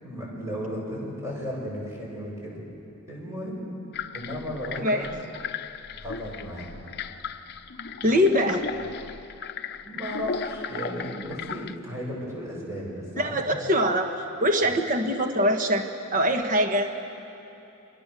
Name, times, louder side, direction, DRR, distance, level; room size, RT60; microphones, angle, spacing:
voice 1, 0.0-2.5 3.1-3.7 4.1-5.1 6.0-6.7 8.0-8.2 9.8-13.6, equal, 15° right, -4 dB, 7.9 m, -35 dB
sound 1, 3.9-11.8, left 6 dB, 50° left, 0.8 m, -36 dB
voice 2, 8.0-8.6 13.2-15.9 16.1-16.9, equal, 40° right, 4 dB, 1.5 m, -23 dB
30.0 x 23.5 x 7.0 m, 2.9 s
head